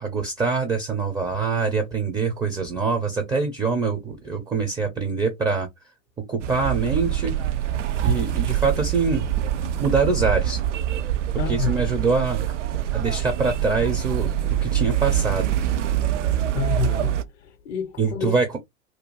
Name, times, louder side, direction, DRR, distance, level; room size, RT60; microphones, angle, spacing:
voice 1, 0.0-5.7 6.3-7.3 8.0-9.3 9.8-10.6 11.5-12.6 12.9-15.6 18.0-18.6, right 4 dB, 10° right, 0.4 m, -24 dB
sound 1, 6.4-17.2, right 11 dB, 70° right, 0.5 m, -25 dB
voice 2, 11.4-11.8 16.5-18.4, left 10 dB, 60° left, 0.6 m, -29 dB
2.6 x 2.2 x 3.0 m
figure-of-eight pair, 90°, 38 cm